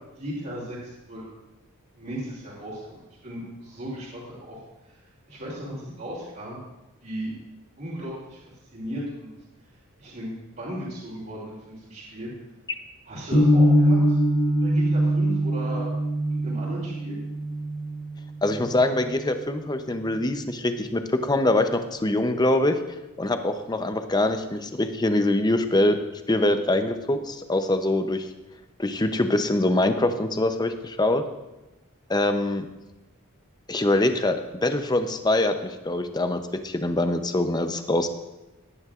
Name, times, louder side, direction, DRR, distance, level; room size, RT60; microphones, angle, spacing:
voice 1, 0.2-1.2 1.9-4.6 4.8-6.6 7.0-7.3 7.8-8.4 8.7-9.3 10.0-12.3 13.1-14.2 14.5-15.9 16.3-17.2, equal, 45° right, -8 dB, 2.9 m, -36 dB
sound 1, 13.3-19.4, equal, 80° left, 2.3 m, -23 dB
voice 2, 18.4-22.8 23.2-26.0 26.3-28.3 28.8-31.2 32.1-32.7 33.7-38.1, left 1 dB, 20° left, 7 dB, 0.6 m, -24 dB
18.5 x 9.4 x 2.5 m, 1.0 s
head